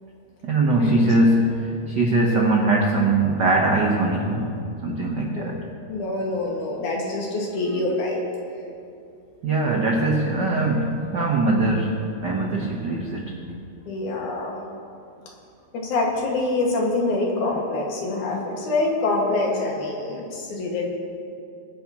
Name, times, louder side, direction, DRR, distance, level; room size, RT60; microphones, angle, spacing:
voice 1, 0.4-4.6 4.8-5.6 9.4-13.3, right 2 dB, 90° right, -1 dB, 0.9 m, -21 dB
voice 2, 5.9-8.2 13.9-14.6 15.7-20.9, left 2 dB, 75° left, -2 dB, 3.2 m, -25 dB
24.0 x 9.8 x 2.9 m, 2.5 s
omnidirectional pair, 3.6 m